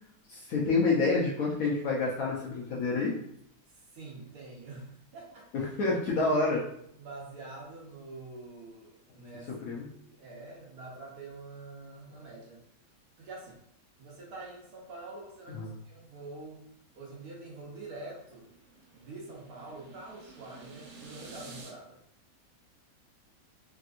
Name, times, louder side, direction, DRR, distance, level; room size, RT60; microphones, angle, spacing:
voice 1, 0.3-3.1 5.5-6.6 9.6-9.8 15.6-15.7, left 3 dB, 65° left, -4 dB, 0.9 m, -28 dB
voice 2, 3.7-5.5 5.9-6.0 7.0-9.5 10.1-12.6 13.2-13.6 14.0-16.6 16.9-18.5 18.9-22.0, right 2 dB, 65° right, -3 dB, 1.1 m, -46 dB
sound 1, 17.4-21.7, right 3 dB, 90° right, 1.4 m, -51 dB
3.4 x 2.8 x 2.4 m, 0.72 s
omnidirectional pair, 1.9 m